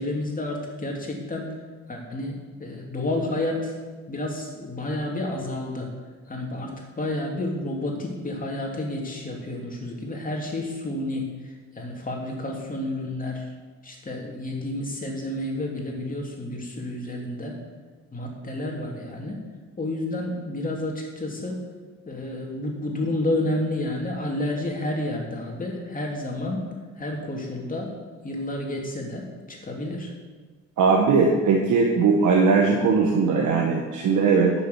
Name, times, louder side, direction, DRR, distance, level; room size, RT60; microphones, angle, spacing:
voice 1, 0.0-1.5 1.9-3.7 4.1-5.9 6.3-13.5 13.8-17.6 18.1-19.4 19.8-21.6 22.0-27.9 28.2-30.1, left 1 dB, 25° left, 0 dB, 3.1 m, -30 dB
voice 2, 30.8-34.5, right 4 dB, 75° right, 0 dB, 1.5 m, -19 dB
10.5 x 7.0 x 7.1 m, 1.4 s
cardioid pair, 90°, 30 cm